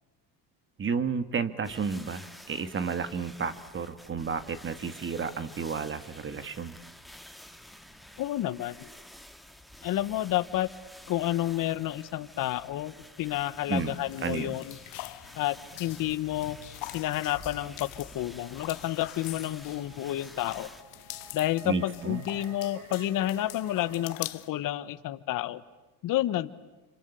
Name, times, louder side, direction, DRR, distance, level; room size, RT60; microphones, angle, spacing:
voice 1, 0.8-6.7 13.7-13.9 14.2-14.5 21.6-22.3, right 5 dB, 30° right, 11 dB, 2.0 m, -32 dB
sound 1, 1.6-20.8, equal, ahead, 2.0 m, -50 dB
voice 2, 8.2-8.7 9.8-10.7 11.1-14.8 15.3-16.6 16.9-20.7 21.3-25.6 26.0-26.5, left 14 dB, 55° left, 13 dB, 1.3 m, -30 dB
sound 2, 13.7-24.5, left 20 dB, 75° left, 1.2 m, -44 dB
sound 3, 18.8-24.2, right 7 dB, 90° right, 3.3 m, -51 dB
27.5 x 26.5 x 8.2 m, 1.1 s
supercardioid pair, 105°, 40 cm